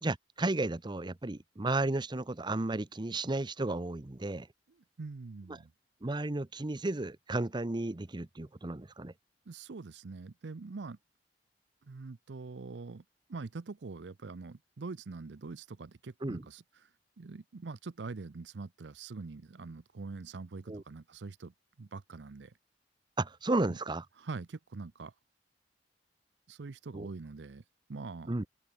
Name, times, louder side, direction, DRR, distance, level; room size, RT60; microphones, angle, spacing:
voice 1, 0.0-4.5 5.5-5.6 6.0-9.1 16.2-16.4 20.7-20.8 23.2-24.0 26.9-27.1 28.3-28.4, right 2 dB, 25° right, 0.7 m, -33 dB
voice 2, 4.8-5.7 9.5-11.0 11.9-13.0 13.3-16.9 17.2-22.5 23.7-23.8 24.2-25.1 26.5-27.6 27.9-28.3, right 4 dB, 80° right, 0.6 m, -44 dB
head